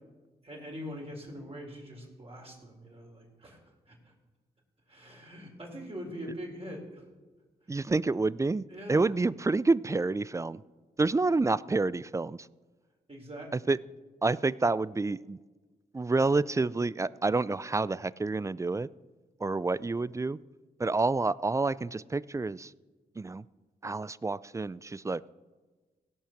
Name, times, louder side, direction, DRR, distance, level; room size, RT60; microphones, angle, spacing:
voice 1, 0.4-3.6 3.9-4.0 4.9-7.0 8.7-9.1 13.1-13.7, equal, 30° right, -1 dB, 4.2 m, -43 dB
voice 2, 7.7-10.6 11.0-12.5 13.5-13.8 14.2-15.4 15.9-18.9 19.4-20.4 20.8-22.7 23.2-23.4 23.8-25.2, right 3 dB, 15° right, 20 dB, 0.3 m, -28 dB
16.5 x 5.7 x 5.9 m, 1.3 s
supercardioid pair, 45°, 18 cm